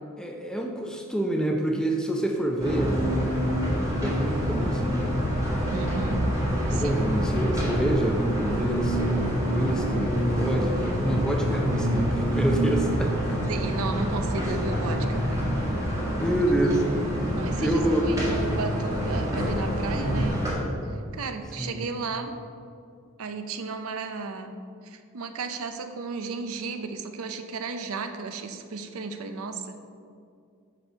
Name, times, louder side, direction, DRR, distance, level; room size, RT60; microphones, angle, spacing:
voice 1, 0.2-3.0 3.9-5.1 6.7-13.4 15.0-15.1 16.2-16.8 17.6-18.1 19.9-20.4 21.6-21.9, right 1 dB, 5° left, 2 dB, 0.5 m, -27 dB
sound 1, 2.6-20.5, equal, 15° right, 1.5 m, -27 dB
voice 2, 5.7-6.2 6.7-7.0 13.5-15.4 17.4-20.4 20.8-22.3 23.2-24.6 24.8-29.8, right 4 dB, 75° right, 7 dB, 0.5 m, -34 dB
6.8 x 5.2 x 4.5 m, 2.4 s
head